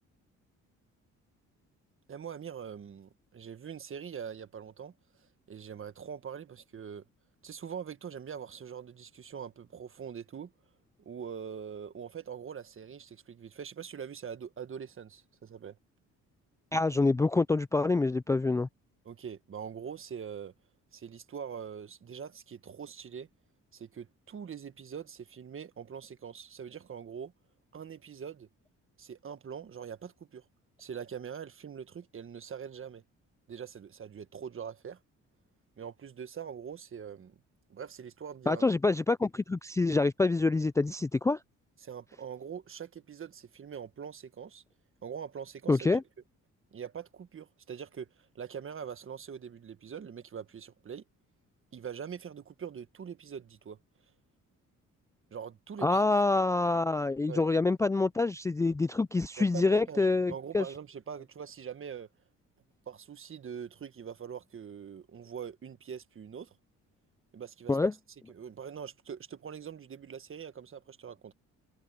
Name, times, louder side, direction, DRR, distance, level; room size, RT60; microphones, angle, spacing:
voice 1, 2.1-4.9 5.5-7.0 7.4-10.5 11.0-15.8 19.0-20.5 20.9-23.3 23.7-27.3 27.7-28.5 29.0-30.4 30.8-33.0 33.5-35.0 35.8-37.4 37.7-38.6 41.8-44.6 45.0-46.0 46.7-51.0 51.7-53.8 55.3-56.0 57.3-57.4 59.4-62.1 62.9-66.5 67.3-67.8 68.3-71.3, right 7 dB, 45° right, 1.6 m, -43 dB
voice 2, 16.7-18.7 38.5-41.4 45.7-46.0 55.8-60.7 67.7-67.9, left 3 dB, 10° left, 0.3 m, -26 dB
cardioid pair, 90°, 30 cm